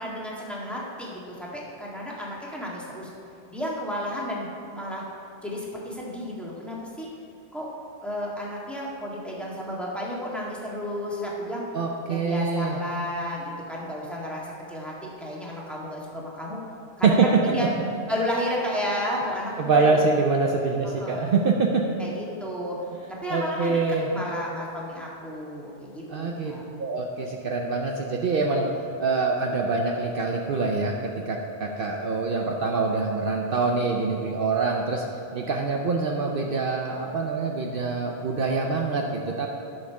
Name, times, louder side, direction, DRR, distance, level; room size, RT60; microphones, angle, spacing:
voice 1, 0.0-3.1 3.5-5.0 5.4-7.1 7.5-7.7 8.0-11.6 12.1-16.6 17.0-17.7 18.1-19.9 20.8-21.5 22.0-22.8 23.2-23.8 24.1-26.6, equal, ahead, -5 dB, 1.7 m, -32 dB
voice 2, 11.7-12.8 17.0-17.4 19.6-21.8 23.3-24.1 26.1-26.5 26.8-28.7 29.0-35.0 35.3-39.5, right 4 dB, 60° right, 1 dB, 0.8 m, -25 dB
11.0 x 6.5 x 4.7 m, 2.9 s
omnidirectional pair, 1.1 m